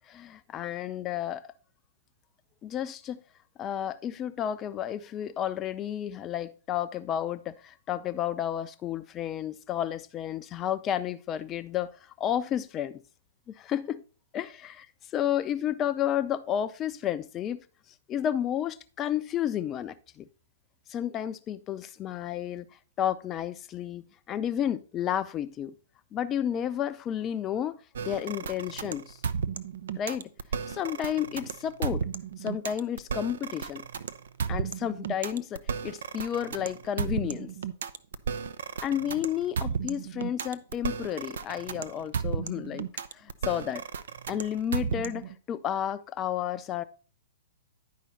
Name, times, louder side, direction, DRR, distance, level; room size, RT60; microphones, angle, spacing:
voice 1, 0.1-1.5 2.6-3.2 3.6-13.0 13.5-13.8 14.3-14.9 15.1-17.6 18.1-20.3 20.9-22.7 23.0-25.7 26.1-27.8 28.0-29.2 30.0-30.3 30.7-32.0 32.4-33.8 34.5-37.5 38.8-42.9 43.1-43.8 44.3-46.8, left 10 dB, 25° left, 0.5 m, -31 dB
average funky, 27.9-45.4, right 6 dB, 65° right, 0.5 m, -34 dB
10.5 x 5.0 x 4.0 m
figure-of-eight pair, 115°, 0 cm